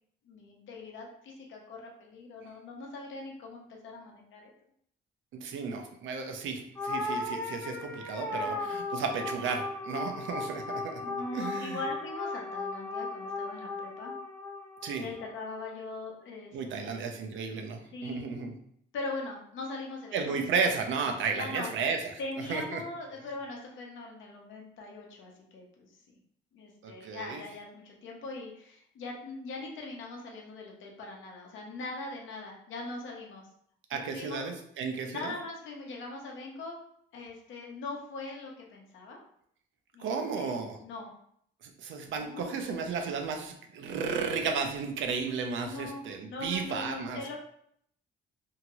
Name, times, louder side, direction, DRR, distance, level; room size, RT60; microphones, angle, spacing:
voice 1, 0.2-4.5 8.3-8.7 11.0-14.1 15.0-17.0 17.9-18.2 18.9-20.4 21.3-21.7 22.2-25.9 26.5-33.5 34.0-34.4 35.1-36.7 37.1-39.2 39.9-41.1 42.2-42.6 45.6-47.4, left 3 dB, 75° left, 0 dB, 0.8 m, -41 dB
voice 2, 5.3-11.0 11.3-11.8 14.8-15.1 16.5-18.5 20.1-22.8 26.8-27.4 33.9-35.3 40.0-40.8 41.6-47.4, right 5 dB, 75° right, 5 dB, 0.6 m, -33 dB
sound 1, 6.8-15.3, left 2 dB, 10° left, 0.6 m, -36 dB
2.8 x 2.4 x 2.9 m, 0.68 s
cardioid pair, 90°, 20 cm